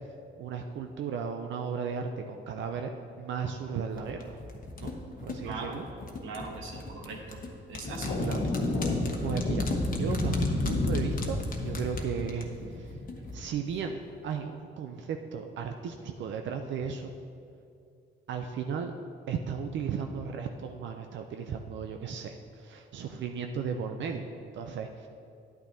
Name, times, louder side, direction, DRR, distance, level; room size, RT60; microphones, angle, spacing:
voice 1, 0.4-2.9 3.2-4.4 4.8-4.9 5.2-5.9 8.2-8.9 9.2-13.0 13.3-17.1 18.3-18.9 19.3-25.1, right 6 dB, 70° right, 5 dB, 0.5 m, -35 dB
sound 1, 3.9-13.3 13.6-13.7, left 3 dB, 45° left, 1.1 m, -40 dB
voice 2, 5.4-5.8 6.2-7.4 7.7-8.2, right 4 dB, 85° right, 0 dB, 1.2 m, -40 dB
sound 2, 7.8-13.5, left 2 dB, 60° left, 1.2 m, -30 dB
10.5 x 8.8 x 2.7 m, 2.5 s
cardioid pair, 90°, 20 cm